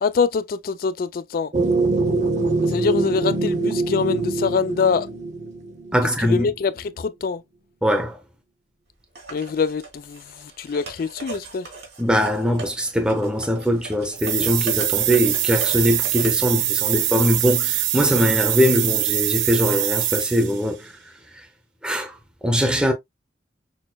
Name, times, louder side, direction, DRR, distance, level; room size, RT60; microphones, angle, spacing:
voice 1, 0.0-1.5 2.7-5.1 6.2-7.4 9.3-11.7, left 5 dB, 50° left, 0.3 m, -24 dB
sound 1, 1.5-6.2, right 3 dB, 40° right, 0.8 m, -23 dB
voice 2, 5.9-6.5 7.8-8.2 12.0-20.9 21.8-22.1 22.4-22.9, equal, 5° right, 0.7 m, -21 dB
sound 2, 9.2-16.4, right 3 dB, 65° right, 1.7 m, -39 dB
sound 3, 14.2-20.6, right 13 dB, 80° right, 0.4 m, -23 dB
6.2 x 2.1 x 2.2 m
head